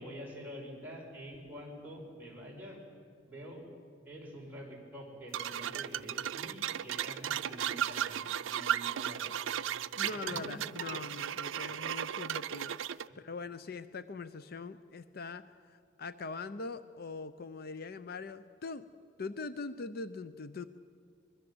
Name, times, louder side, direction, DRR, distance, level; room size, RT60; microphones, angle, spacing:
voice 1, 0.0-2.8 3.3-3.6 4.1-9.3 10.0-10.6, equal, 10° right, -3 dB, 5.7 m, -46 dB
sound 1, 5.3-13.1, right 10 dB, 90° right, 0.5 m, -35 dB
voice 2, 9.9-18.9 19.2-20.6, left 4 dB, 55° left, 12 dB, 0.6 m, -42 dB
25.0 x 21.0 x 7.9 m, 2.2 s
head